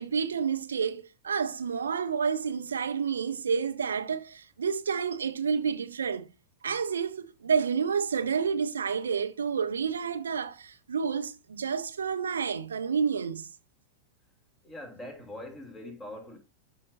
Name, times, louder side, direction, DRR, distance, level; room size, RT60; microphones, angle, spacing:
voice 1, 0.0-6.3 6.6-13.5, right 6 dB, 70° right, 0.7 m, -29 dB
voice 2, 14.6-16.4, left 1 dB, 15° left, 2.9 m, -43 dB
12.5 x 5.5 x 2.7 m
figure-of-eight pair, 90°, 0 cm